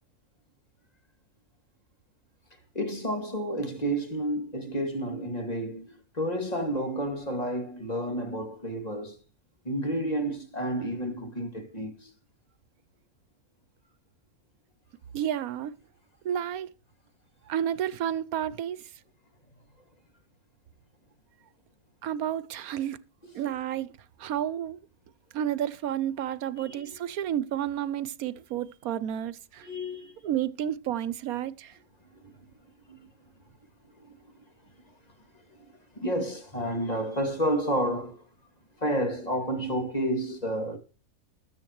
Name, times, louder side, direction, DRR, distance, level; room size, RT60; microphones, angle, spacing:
voice 1, 2.7-9.2 9.6-12.1 26.6-26.9 29.6-30.1 32.2-32.3 32.9-33.0 34.1-34.2 35.5-35.6 36.0-38.2 38.8-40.8, equal, 25° left, 2.3 m, -30 dB
voice 2, 15.1-15.7 16.2-16.7 17.5-18.9 22.0-23.0 23.3-23.9 24.2-24.8 25.3-29.7 30.2-31.7, right 10 dB, 75° right, 1.2 m, -31 dB
20.5 x 7.8 x 3.1 m
omnidirectional pair, 1.6 m